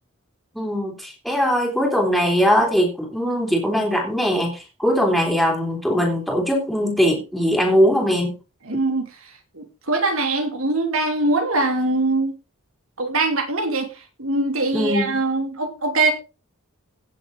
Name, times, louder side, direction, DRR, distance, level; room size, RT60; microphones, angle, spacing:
voice 1, 0.5-8.4 14.7-15.2, equal, ahead, 3.3 m, -20 dB
voice 2, 8.6-12.3 13.0-16.1, right 2 dB, 70° right, 2.9 m, -23 dB
16.5 x 7.2 x 4.0 m
head